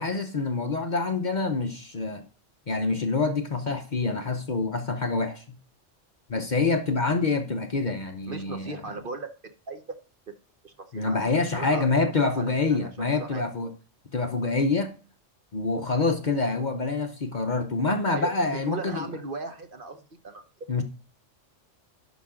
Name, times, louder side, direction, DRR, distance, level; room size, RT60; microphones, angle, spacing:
voice 1, 0.0-2.3 2.7-5.6 6.3-8.8 10.9-13.7 14.1-14.9 15.5-19.1 20.7-20.8, left 3 dB, 40° left, 0.8 m, -26 dB
voice 2, 8.3-9.3 9.7-10.0 10.3-10.4 10.6-11.2 11.5-11.8 12.4-12.9 13.2-13.4 18.1-20.4, right 3 dB, 45° right, 1.2 m, -37 dB
11.0 x 5.7 x 3.7 m
omnidirectional pair, 1.3 m